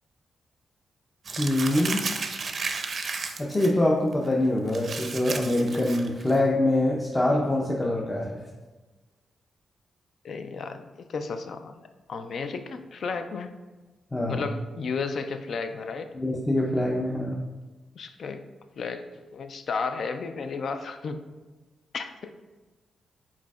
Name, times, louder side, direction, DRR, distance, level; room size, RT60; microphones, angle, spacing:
Crumpling crinkling, 1.3-3.7 4.1-4.3 4.7-6.4, right 4 dB, 50° right, 0.5 m, -33 dB
voice 1, 1.4-2.0 3.4-8.4 14.1-14.4 16.1-17.4, left 1 dB, 20° left, -2 dB, 0.6 m, -24 dB
voice 2, 10.2-11.8 12.1-13.5 14.3-16.1 17.9-18.4 18.8-19.1 19.3-21.3 21.9-22.3, left 4 dB, 65° left, 8 dB, 0.4 m, -33 dB
4.8 x 4.1 x 2.3 m, 1.2 s
cardioid pair, 70°, 0 cm